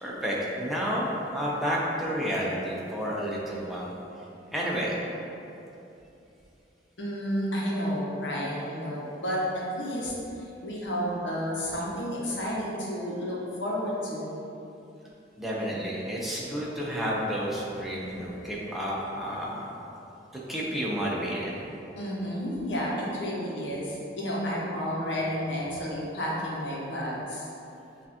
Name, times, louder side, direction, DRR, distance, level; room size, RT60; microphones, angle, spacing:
voice 1, 0.0-3.9 4.5-5.0 15.4-19.7 20.5-21.5, equal, ahead, -6 dB, 0.6 m, -30 dB
voice 2, 7.0-10.1 10.4-14.3 22.0-27.5, equal, 80° left, -5 dB, 0.9 m, -31 dB
6.4 x 2.5 x 2.8 m, 2.9 s
head